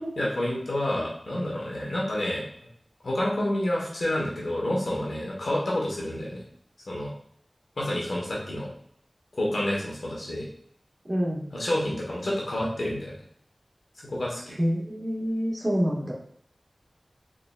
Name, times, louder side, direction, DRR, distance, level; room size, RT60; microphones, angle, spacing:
voice 1, 0.2-2.5 3.0-6.4 6.9-7.1 7.8-8.7 9.3-10.5 11.5-13.2 14.0-14.6, left 1 dB, 85° left, -3 dB, 1.2 m, -29 dB
voice 2, 11.0-11.5 14.6-16.1, equal, 35° right, -5 dB, 1.6 m, -27 dB
4.0 x 3.7 x 2.4 m, 0.65 s
wide cardioid pair, 45°, 0 cm